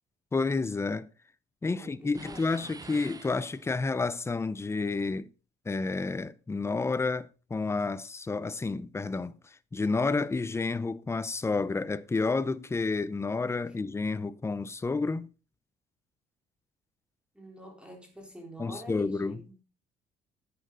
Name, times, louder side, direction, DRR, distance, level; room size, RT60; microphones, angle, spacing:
voice 1, 0.3-1.1 1.6-5.3 5.7-15.3 18.6-19.4, left 3 dB, 15° left, 0.7 m, -30 dB
voice 2, 1.8-2.4 17.3-19.6, equal, 5° right, 3.7 m, -47 dB
sound 1, 2.1-4.0, right 4 dB, 20° right, 1.0 m, -47 dB
11.5 x 8.8 x 3.9 m
cardioid pair, 110°, 17 cm